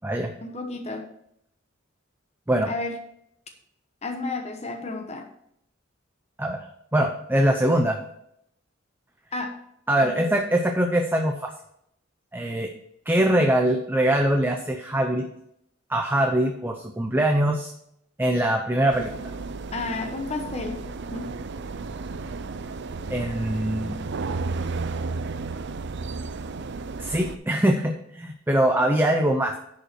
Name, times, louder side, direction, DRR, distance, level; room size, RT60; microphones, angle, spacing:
voice 1, 0.4-1.1 2.7-3.0 4.0-5.3 9.3-9.5 10.0-10.3 19.7-20.9 21.1-21.4, left 3 dB, 35° left, 4 dB, 1.0 m, -32 dB
voice 2, 6.9-8.0 9.9-11.5 12.3-12.7 13.1-15.3 15.9-17.7 18.2-19.1 23.1-24.0 27.0-29.5, right 1 dB, 10° right, 4 dB, 0.7 m, -22 dB
sound 1, 18.9-27.4, right 3 dB, 60° right, 0.5 m, -33 dB
10.5 x 5.4 x 4.6 m, 0.74 s
head